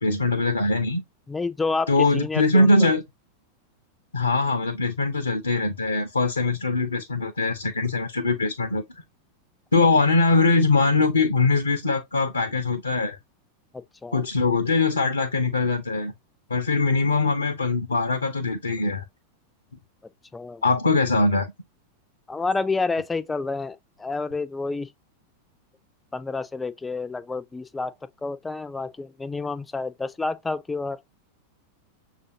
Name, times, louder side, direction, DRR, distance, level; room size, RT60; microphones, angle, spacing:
voice 1, 0.0-1.0 1.9-3.0 4.1-8.8 9.7-13.2 14.1-16.1 16.5-19.0 20.6-21.5, left 3 dB, 75° left, 0.5 m, -22 dB
voice 2, 1.3-2.9 13.7-14.2 20.3-20.6 22.3-24.9 26.1-27.9 28.2-31.0, left 3 dB, 10° left, 0.4 m, -29 dB
6.5 x 2.5 x 2.7 m
figure-of-eight pair, 90°, 0 cm